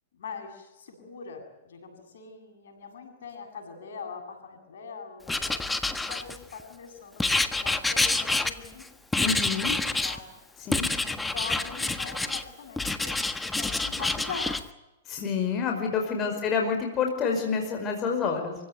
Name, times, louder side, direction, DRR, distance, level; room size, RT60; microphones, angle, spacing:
voice 1, 0.1-5.6 6.1-8.8 10.0-10.3 11.0-14.5 16.1-16.4, left 5 dB, 75° left, 4 dB, 8.0 m, -42 dB
Writing, 5.3-6.6 7.2-8.8 9.1-10.2 10.7-12.4 12.8-14.6, left 2 dB, 5° left, 1.4 m, -27 dB
voice 2, 9.2-9.7 10.6-10.9 15.1-18.5, left 5 dB, 25° left, 3 dB, 5.3 m, -28 dB
27.0 x 16.5 x 9.4 m, 1.0 s
hypercardioid pair, 130°, 0 cm